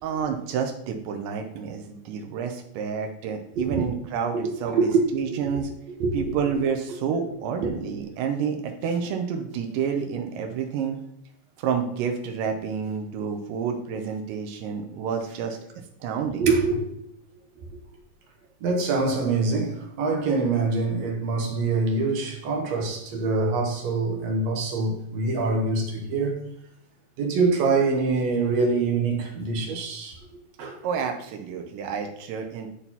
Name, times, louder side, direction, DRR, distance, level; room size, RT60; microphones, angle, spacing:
voice 1, 0.0-5.7 6.1-11.0 11.6-15.6 16.0-16.5 30.8-32.7, right 6 dB, 90° right, 2.3 m, -29 dB
voice 2, 4.7-5.0 5.3-5.4 6.0-6.2 16.4-16.9 18.6-26.4 27.2-30.2 30.6-30.8, right 3 dB, 65° right, 2.0 m, -24 dB
11.0 x 4.1 x 2.8 m
omnidirectional pair, 3.8 m